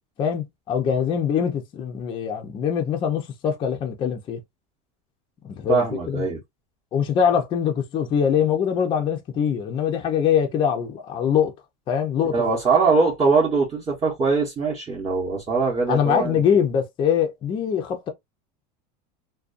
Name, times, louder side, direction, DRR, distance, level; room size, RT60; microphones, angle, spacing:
voice 1, 0.2-4.4 5.4-6.2 6.9-11.5 11.9-12.5 15.9-18.1, left 8 dB, 25° left, 0.5 m, -23 dB
voice 2, 5.7-6.4 12.3-16.4, right 4 dB, 20° right, 0.8 m, -22 dB
2.5 x 2.2 x 2.4 m
supercardioid pair, 150°, 20 cm